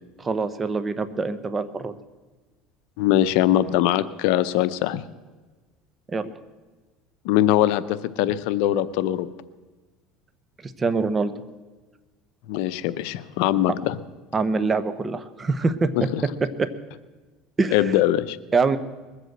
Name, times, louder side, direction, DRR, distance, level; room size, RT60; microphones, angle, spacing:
voice 1, 0.2-1.9 6.1-6.3 10.8-11.3 14.3-15.9 16.6-16.7 17.6-17.8 18.5-18.8, right 4 dB, 20° right, 13 dB, 0.9 m, -24 dB
voice 2, 3.0-5.0 7.2-9.3 12.5-14.0 16.0-16.2 17.7-18.4, left 13 dB, 75° left, 14 dB, 0.7 m, -22 dB
20.5 x 8.0 x 7.9 m, 1.3 s
supercardioid pair, 125°, 0 cm